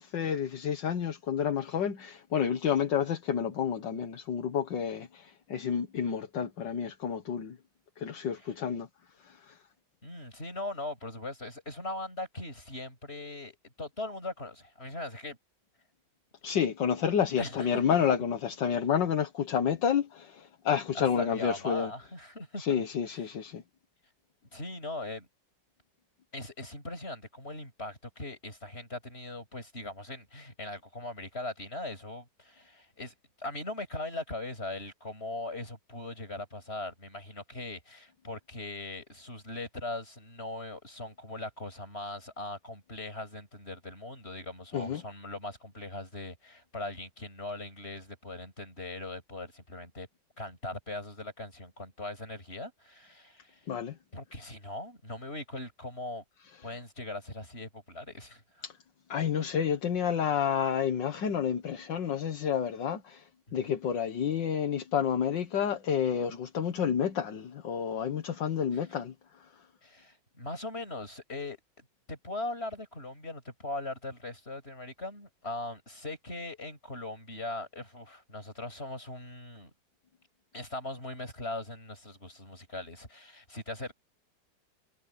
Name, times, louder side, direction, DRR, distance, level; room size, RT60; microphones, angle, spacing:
voice 1, 0.0-7.6 8.0-8.9 9.2-9.6 16.4-21.9 22.6-23.6 44.7-45.0 53.7-54.0 58.6-58.7 59.1-69.5, left 8 dB, 70° left, 2.0 m, -30 dB
voice 2, 10.0-15.4 17.4-18.0 21.0-22.8 23.1-23.3 24.5-25.3 26.3-50.1 50.4-53.6 54.1-56.2 56.6-58.6 63.5-63.7 69.8-79.7 80.5-83.9, left 2 dB, 30° left, 8.4 m, -40 dB
omnidirectional pair, 2.0 m